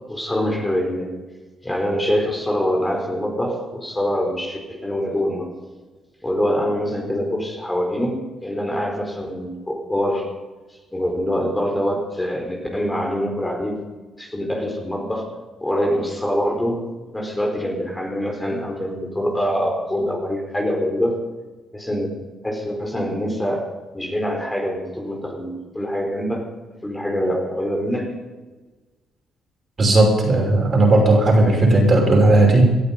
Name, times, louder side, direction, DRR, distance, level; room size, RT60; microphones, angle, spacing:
voice 1, 0.1-1.1 1.6-5.5 6.2-10.3 10.9-13.8 14.2-15.3 15.6-16.8 17.1-21.2 21.7-22.1 22.4-23.6 23.9-26.4 26.8-28.1, equal, 10° left, 1 dB, 4.5 m, -24 dB
voice 2, 29.8-32.6, right 2 dB, 40° right, 1 dB, 5.7 m, -15 dB
19.0 x 12.5 x 5.4 m, 1.3 s
cardioid pair, 90°, 0 cm